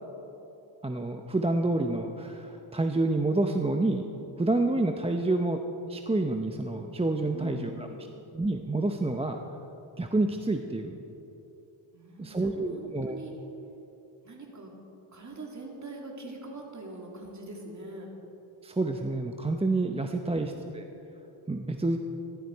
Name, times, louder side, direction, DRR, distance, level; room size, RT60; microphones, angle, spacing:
voice 1, 0.8-4.1 4.4-5.6 5.9-7.9 8.3-9.4 10.0-11.0 12.2-13.1 18.6-20.9 21.5-22.0, right 2 dB, 10° right, 4 dB, 0.6 m, -28 dB
voice 2, 7.3-8.1 11.9-13.3 14.2-14.7 15.1-18.1 20.3-20.7, right 2 dB, 35° right, -1 dB, 2.8 m, -43 dB
15.5 x 12.5 x 4.6 m, 2.9 s
cardioid pair, 90°, 50 cm